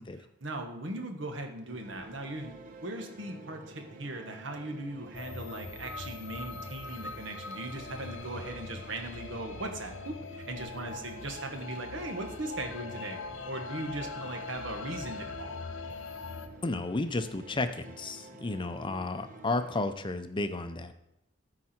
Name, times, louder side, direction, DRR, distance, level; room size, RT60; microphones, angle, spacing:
voice 1, 0.0-15.5, right 1 dB, 80° right, 4 dB, 1.5 m, -39 dB
sound 1, 1.7-19.9, right 2 dB, 45° right, 0.9 m, -50 dB
sound 2, 5.1-16.5, left 4 dB, 80° left, 0.8 m, -42 dB
voice 2, 16.6-20.9, left 2 dB, 25° left, 10 dB, 0.5 m, -32 dB
13.5 x 4.8 x 4.4 m, 0.86 s
head